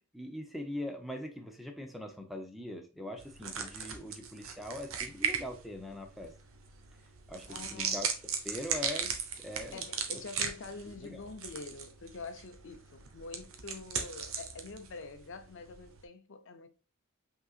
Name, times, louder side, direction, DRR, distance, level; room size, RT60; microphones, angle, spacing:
voice 1, 0.1-6.3 7.3-9.8 10.1-10.2 10.9-11.3, left 1 dB, ahead, 0.6 m, -42 dB
sound 1, 3.2-16.0, right 6 dB, 70° right, 0.9 m, -38 dB
voice 2, 7.5-8.0 9.7-16.7, left 3 dB, 60° left, 0.6 m, -46 dB
5.4 x 3.8 x 2.4 m
head